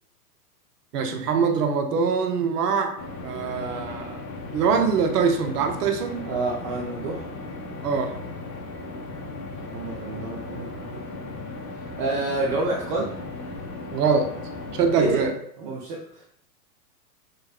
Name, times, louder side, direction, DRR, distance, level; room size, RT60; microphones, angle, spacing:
voice 1, 0.9-4.2 4.5-6.2 7.8-8.1 13.9-14.3 14.7-15.3, right 5 dB, 70° right, 6 dB, 0.8 m, -23 dB
sound 1, 3.0-15.3, left 3 dB, 40° left, 0.7 m, -36 dB
voice 2, 6.2-7.3 9.7-11.1 12.0-13.1 15.0-15.3 15.6-16.3, right 2 dB, 30° right, -3 dB, 0.5 m, -28 dB
5.2 x 2.1 x 2.4 m, 0.72 s
hypercardioid pair, 115°, 49 cm